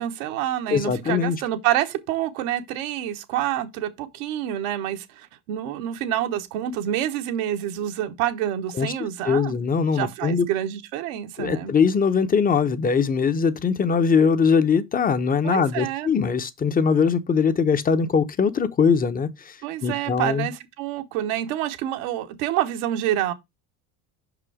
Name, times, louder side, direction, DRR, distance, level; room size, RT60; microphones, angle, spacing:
voice 1, 0.0-9.5 9.9-11.7 15.4-16.1 19.6-23.3, right 12 dB, 80° right, 1.1 m, -27 dB
voice 2, 0.7-1.4 8.7-8.9 9.2-10.5 11.4-20.5, left 6 dB, 20° left, 0.7 m, -21 dB
5.5 x 4.9 x 4.8 m
supercardioid pair, 100°, 39 cm